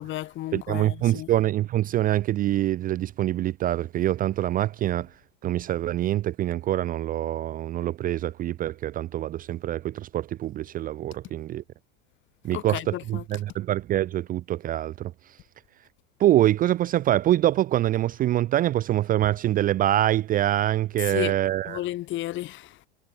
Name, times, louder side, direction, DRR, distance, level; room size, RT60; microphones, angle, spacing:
voice 1, 0.0-1.3 12.5-13.2 21.0-21.3 21.7-22.8, left 15 dB, 35° left, 1.5 m, -33 dB
voice 2, 0.5-5.1 5.4-11.6 12.4-15.1 16.2-21.8, right 13 dB, 25° right, 0.6 m, -25 dB
hypercardioid pair, 110°, 36 cm